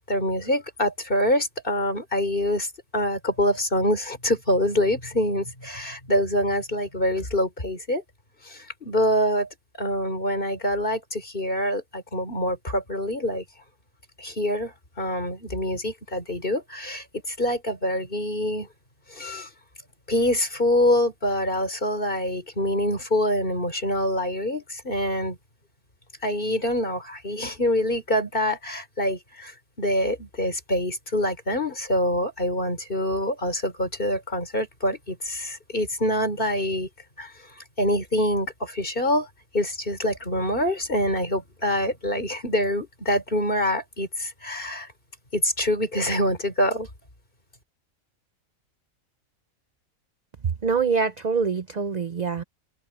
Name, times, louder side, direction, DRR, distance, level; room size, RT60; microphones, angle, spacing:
voice 1, 0.1-8.0 8.4-9.5 9.8-13.4 14.2-18.7 19.1-19.5 20.1-25.4 26.2-29.5 29.8-36.9 37.2-37.3 37.8-39.3 39.5-44.9 45.3-46.9, left 1 dB, 35° left, 4.5 m, -25 dB
voice 2, 50.6-52.4, right 5 dB, 45° right, 0.6 m, -24 dB
open air
omnidirectional pair, 1.5 m